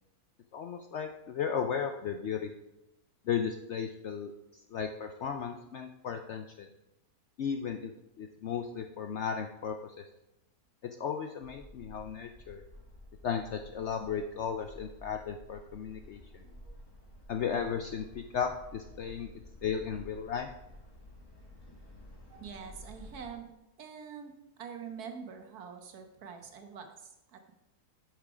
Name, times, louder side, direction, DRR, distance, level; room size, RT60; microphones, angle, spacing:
voice 1, 0.5-2.5 3.3-4.3 4.7-6.7 7.4-7.9 8.2-10.0 11.0-12.6 13.2-16.4 17.3-19.3 19.6-20.5, left 7 dB, 70° left, 6 dB, 0.7 m, -35 dB
sound 1, 11.4-23.3, left 1 dB, 15° left, 1.6 m, -52 dB
voice 2, 22.4-23.5 23.8-24.3 24.6-27.5, right 6 dB, 70° right, 6 dB, 1.5 m, -45 dB
8.3 x 6.4 x 5.0 m, 0.91 s
omnidirectional pair, 1.7 m